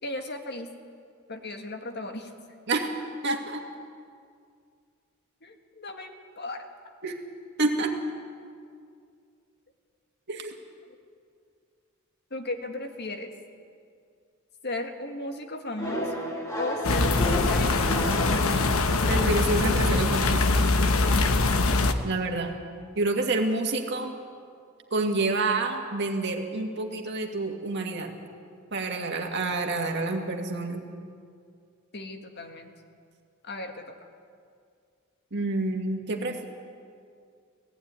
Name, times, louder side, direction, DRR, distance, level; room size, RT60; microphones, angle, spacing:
voice 1, 0.0-0.7 1.3-2.3 5.4-6.7 12.3-13.3 14.6-16.3 16.6-18.1 31.9-32.7 33.4-33.8, left 2 dB, 50° left, 5 dB, 1.7 m, -36 dB
voice 2, 3.2-3.6 7.0-7.2 7.6-7.9 10.3-10.6 19.1-20.5 22.0-22.5 23.0-24.1 24.9-28.1 28.7-30.8 35.3-36.4, right 3 dB, 55° right, 3 dB, 2.1 m, -28 dB
sound 1, 15.8-19.3, equal, 15° left, 3.1 m, -32 dB
sound 2, 16.8-21.9, left 3 dB, 75° left, 1.1 m, -23 dB
18.0 x 15.5 x 9.6 m, 2.2 s
head